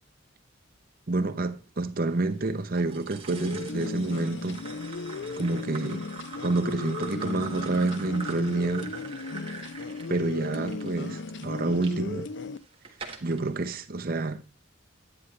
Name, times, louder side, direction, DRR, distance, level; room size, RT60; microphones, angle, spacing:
voice 1, 1.1-4.6 5.4-6.0 6.4-9.0 10.1-12.3 13.2-14.4, right 2 dB, 45° right, 0.8 m, -28 dB
sound 1, 2.7-11.9 12.5-13.4, right 5 dB, 25° right, 1.5 m, -43 dB
sound 2, 3.3-12.6, left 3 dB, 60° left, 0.5 m, -36 dB
10.0 x 9.7 x 3.3 m
head